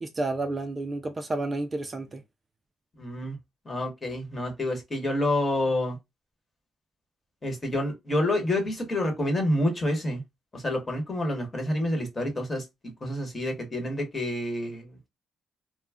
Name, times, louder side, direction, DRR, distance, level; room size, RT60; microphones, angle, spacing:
voice 1, 0.0-2.2, right 2 dB, 30° right, 0.4 m, -31 dB
voice 2, 3.0-3.4 3.6-6.0 7.4-10.2 10.5-12.6 13.0-15.1, left 1 dB, 25° left, 1.1 m, -28 dB
2.3 x 2.1 x 3.4 m
cardioid pair, 90°, 0 cm